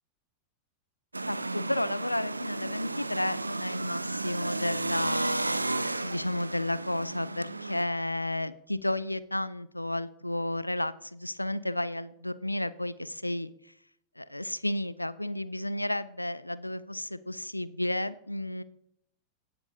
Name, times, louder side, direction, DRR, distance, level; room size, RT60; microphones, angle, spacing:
sound 1, 1.1-7.8, right 2 dB, 80° right, 0.4 m, -33 dB
voice 1, 1.3-13.5 14.2-18.6, left 1 dB, 85° left, 0.4 m, -32 dB
17.5 x 7.9 x 2.7 m
figure-of-eight pair, 90°, 0 cm